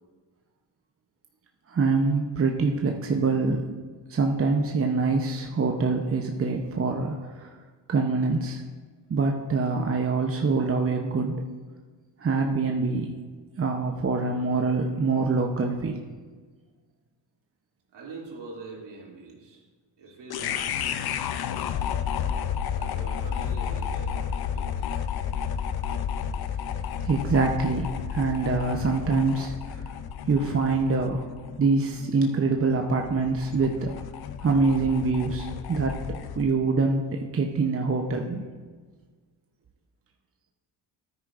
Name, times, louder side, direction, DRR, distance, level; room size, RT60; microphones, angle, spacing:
voice 1, 1.7-3.7 4.1-7.5 7.9-8.6 9.1-11.4 12.2-13.1 13.6-16.0 27.0-29.8 30.3-31.3 31.6-33.9 34.4-36.0 36.4-38.4, right 4 dB, 30° right, 2 dB, 0.9 m, -25 dB
voice 2, 17.9-19.6 20.0-21.8 22.2-22.3 22.7-24.9, right 3 dB, 65° right, -3 dB, 3.1 m, -44 dB
sound 1, 20.3-36.5, left 8 dB, 55° left, 0.6 m, -32 dB
13.5 x 9.8 x 2.6 m, 1.4 s
cardioid pair, 80°, 45 cm